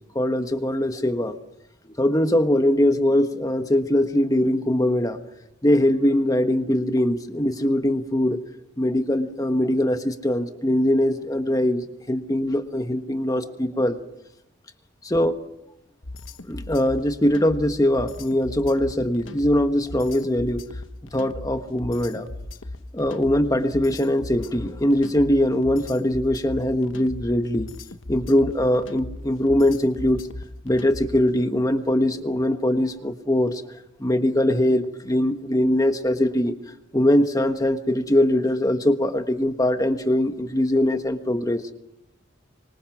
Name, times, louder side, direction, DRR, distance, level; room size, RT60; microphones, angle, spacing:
voice 1, 0.1-1.4 2.0-5.2 5.6-8.4 8.8-14.0 15.0-15.4 16.5-20.6 21.1-22.3 22.9-27.7 28.1-30.3 30.6-33.6 34.0-36.5 36.9-41.6, left 1 dB, 20° left, 7 dB, 1.3 m, -22 dB
sound 1, 16.0-31.3, left 2 dB, 75° left, 1.3 m, -37 dB
25.5 x 25.5 x 6.0 m, 0.86 s
head